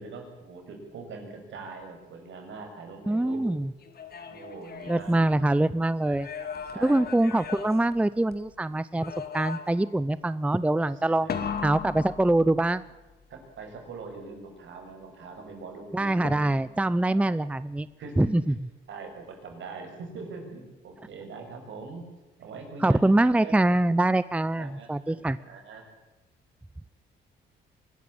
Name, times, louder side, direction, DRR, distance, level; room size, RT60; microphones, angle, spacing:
voice 1, 0.0-3.4 4.3-5.3 6.0-7.0 11.1-11.4 13.3-16.2 17.1-17.3 18.0-18.3 18.9-22.1 22.4-23.1 23.4-23.6 24.6-25.8, right 4 dB, 70° right, 3 dB, 6.7 m, -42 dB
voice 2, 3.1-3.7 4.9-6.3 6.8-11.3 11.6-12.8 15.9-17.9 18.2-18.5 22.8-25.4, right 1 dB, 5° right, 16 dB, 0.6 m, -24 dB
sound 1, 3.8-5.7 6.1-8.5 9.0-10.0 11.3-12.9 16.2-16.9, left 6 dB, 50° left, 2.5 m, -38 dB
23.5 x 13.5 x 8.8 m, 1.1 s
cardioid pair, 90°, 20 cm